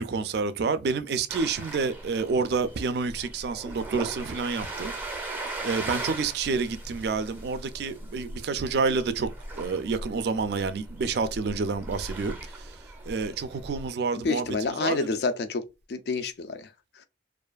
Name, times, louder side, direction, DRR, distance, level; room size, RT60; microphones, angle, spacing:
voice 1, 0.0-4.9 5.6-9.3 9.5-12.7 13.1-15.1, right 4 dB, 60° right, 0.3 m, -29 dB
sound 1, 1.3-13.9, right 2 dB, 10° right, 0.5 m, -39 dB
voice 2, 14.1-17.1, left 4 dB, 60° left, 0.4 m, -30 dB
2.4 x 2.3 x 2.3 m
head